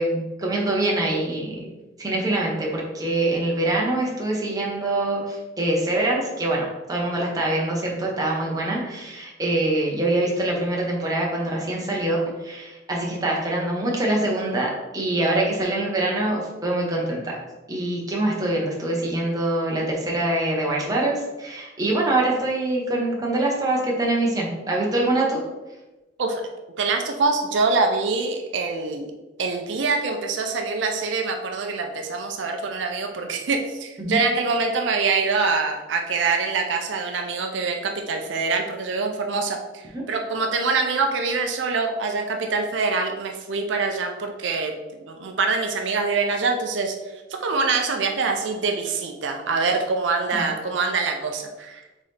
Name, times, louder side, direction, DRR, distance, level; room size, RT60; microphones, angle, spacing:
voice 1, 0.0-1.6 2.0-17.4 17.7-25.4 34.0-34.2 39.9-40.0 50.3-50.5, right 2 dB, 20° right, -3 dB, 0.9 m, -24 dB
voice 2, 26.8-29.1 29.4-39.8 40.1-44.7 45.1-46.9 47.3-51.8, right 4 dB, 80° right, 4 dB, 0.5 m, -24 dB
4.0 x 3.8 x 3.3 m, 1.1 s
head